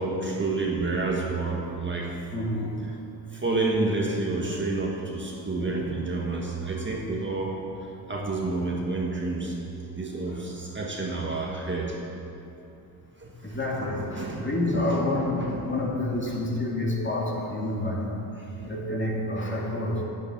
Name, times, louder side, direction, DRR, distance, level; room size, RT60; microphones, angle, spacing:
voice 1, 0.0-2.2 3.3-7.6 8.1-9.5 9.9-11.9 13.2-14.9 15.1-15.6 18.6-18.7, right 3 dB, 25° right, -2 dB, 1.6 m, -29 dB
voice 2, 2.3-2.8 4.5-4.6 5.6-5.9 10.3-10.4 13.4-18.1 18.6-20.0, left 1 dB, 25° left, -3 dB, 2.4 m, -28 dB
9.1 x 9.0 x 6.1 m, 2.8 s
supercardioid pair, 80°, 48 cm